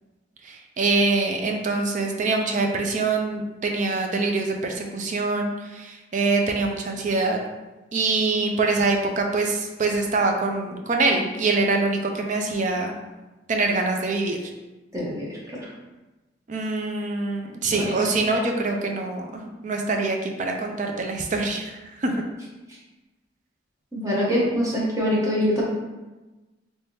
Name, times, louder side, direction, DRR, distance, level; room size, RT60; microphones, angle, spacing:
voice 1, 0.4-7.4 7.9-13.0 13.5-14.4 16.5-22.3, right 3 dB, 45° right, 2 dB, 0.5 m, -24 dB
voice 2, 14.9-15.7 17.8-17.9 23.9-25.6, equal, 20° right, -5 dB, 0.9 m, -24 dB
3.4 x 3.2 x 2.7 m, 1.1 s
head